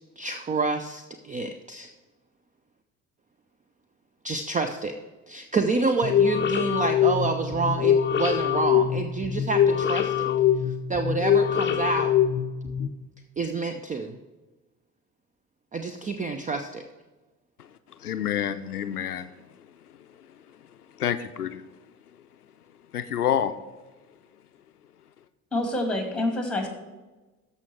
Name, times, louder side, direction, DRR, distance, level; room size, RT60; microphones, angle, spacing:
voice 1, 0.2-1.9 4.2-4.9 5.3-10.3 10.7-12.1 13.4-14.2 15.7-16.8, right 4 dB, 15° right, 7 dB, 0.6 m, -28 dB
sound 1, 6.0-12.9, left 9 dB, 25° left, 0.7 m, -23 dB
voice 2, 18.0-19.3 20.2-20.3 21.0-21.7 22.9-23.5, left 9 dB, 85° left, 11 dB, 0.5 m, -28 dB
voice 3, 25.5-26.7, left 1 dB, ahead, 3 dB, 2.4 m, -27 dB
13.5 x 5.5 x 4.6 m, 1.2 s
figure-of-eight pair, 60°, 45 cm